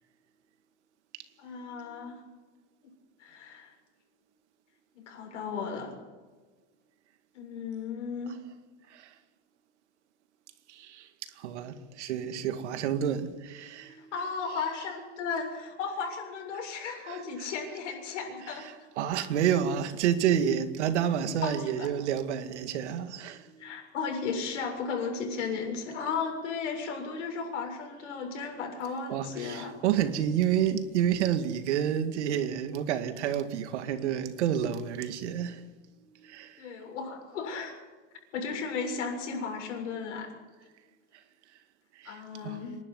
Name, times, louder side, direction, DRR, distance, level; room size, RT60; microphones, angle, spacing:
voice 1, 1.4-2.2 3.2-3.7 4.9-5.9 7.3-8.4 13.9-18.7 21.4-21.9 23.6-29.7 36.6-37.7 38.3-40.3 42.1-42.8, left 5 dB, 90° left, 7.3 m, -35 dB
voice 2, 10.7-14.1 17.0-17.5 19.0-23.8 29.1-35.6 36.2-36.6 42.0-42.6, right 9 dB, 70° right, 2.2 m, -29 dB
27.0 x 12.0 x 9.7 m
supercardioid pair, 180°, 36 cm